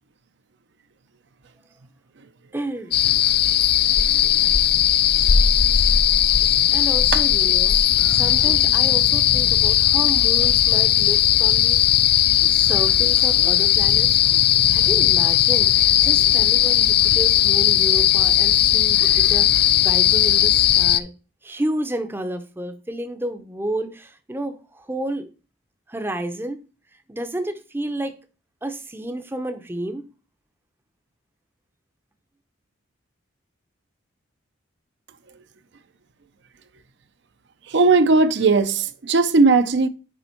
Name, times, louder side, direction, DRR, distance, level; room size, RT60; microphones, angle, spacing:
voice 1, 2.5-2.9 3.2-3.4 6.7-7.8 8.1-11.9 12.5-14.2 14.7-21.1 21.4-25.3 25.9-26.6 27.1-28.2 28.6-30.0, right 1 dB, 10° right, 0.6 m, -31 dB
sound 1, 2.9-21.0, left 11 dB, 50° left, 0.4 m, -17 dB
voice 2, 37.7-39.9, right 3 dB, 55° right, 0.5 m, -17 dB
6.9 x 5.2 x 4.4 m
head